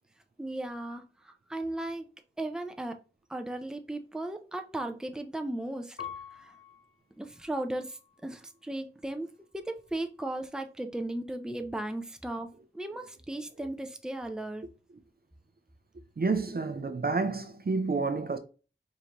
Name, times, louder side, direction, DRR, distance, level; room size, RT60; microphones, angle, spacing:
voice 1, 0.4-2.0 2.4-3.0 3.3-6.0 6.3-6.5 7.2-12.5 12.7-14.6 16.5-16.6, right 1 dB, 5° right, 0.5 m, -36 dB
Piano, 6.0-8.7 9.4-10.1, left 8 dB, 85° left, 0.7 m, -48 dB
voice 2, 16.2-18.4, right 4 dB, 50° right, 0.5 m, -29 dB
4.8 x 2.8 x 2.9 m
wide cardioid pair, 40°, 20 cm